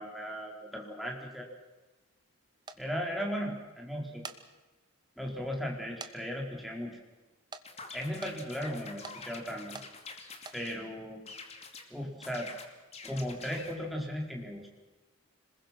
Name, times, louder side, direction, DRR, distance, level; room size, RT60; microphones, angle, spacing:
voice 1, 0.0-1.5 2.8-4.2 5.2-6.9 7.9-9.8 10.5-11.2 11.9-12.5 13.0-14.7, equal, ahead, -1 dB, 4.3 m, -36 dB
sound 1, 2.7-2.8 4.0-4.4 5.0-5.1 6.0-6.1 6.4-6.5 7.5-7.7 8.2-8.4 9.0-9.2 9.7-9.9 10.3-10.6, right 4 dB, 20° right, 1.2 m, -44 dB
sound 2, 7.7-10.8 11.3-11.9 12.2-13.8, left 4 dB, 30° left, 2.6 m, -47 dB
26.5 x 21.0 x 6.1 m, 1.2 s
head